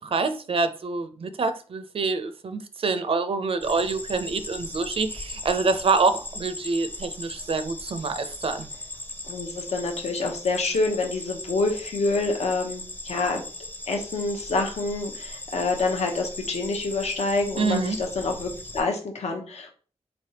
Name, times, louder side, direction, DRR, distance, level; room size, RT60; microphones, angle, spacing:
voice 1, 0.0-8.7 17.6-18.0, right 4 dB, 55° right, 0.4 m, -26 dB
sound 1, 3.6-18.8, left 2 dB, 15° left, 0.6 m, -38 dB
voice 2, 9.3-13.4 13.9-19.7, left 3 dB, 75° left, 0.8 m, -27 dB
4.0 x 3.3 x 2.8 m
wide cardioid pair, 90°, 11 cm